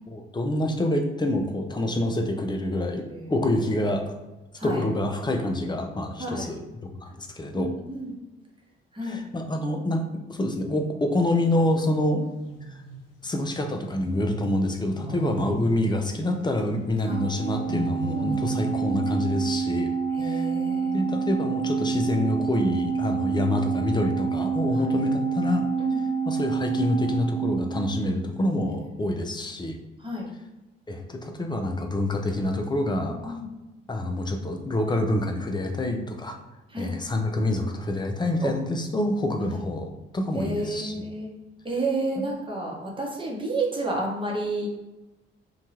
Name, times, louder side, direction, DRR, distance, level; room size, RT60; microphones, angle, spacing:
voice 1, 0.1-3.0 3.3-4.1 4.6-6.6 7.0-7.7 9.0-10.0 10.3-12.2 13.2-19.9 20.2-20.5 20.9-25.7 26.2-29.8 30.9-33.4 33.9-36.4 36.8-41.0 42.2-42.3, left 1 dB, 15° left, 3 dB, 0.5 m, -27 dB
voice 2, 7.5-8.1 8.9-9.2 15.1-15.3 17.1-17.2 18.1-19.0 20.1-21.0 25.8-26.0 29.0-29.1 30.0-30.3 33.0-33.5 36.7-36.9 38.4-38.5 40.3-41.3 41.6-44.7, right 2 dB, 15° right, -3 dB, 0.9 m, -31 dB
sound 1, 12.2-13.1 14.4-15.7 17.1-18.7, right 1 dB, 80° left, 0.6 m, -35 dB
Organ, 17.1-28.3, right 6 dB, 85° right, 1.0 m, -28 dB
2.7 x 2.2 x 2.8 m, 1.0 s
figure-of-eight pair, 40°, 29 cm